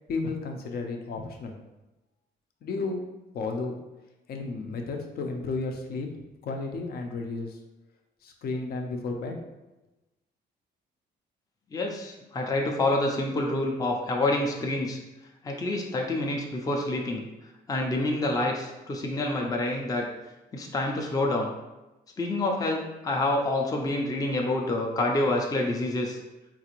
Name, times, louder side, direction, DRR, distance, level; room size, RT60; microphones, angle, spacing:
voice 1, 0.1-1.5 2.6-3.0 3.3-3.8 4.3-6.1 6.4-7.6 8.2-9.3, left 3 dB, 60° left, 3 dB, 0.6 m, -32 dB
voice 2, 11.7-15.0 15.4-17.2 17.7-20.1 20.5-21.5 22.2-26.2, left 2 dB, 20° left, 0 dB, 0.5 m, -27 dB
3.8 x 2.5 x 3.0 m, 1.0 s
cardioid pair, 115°, 18 cm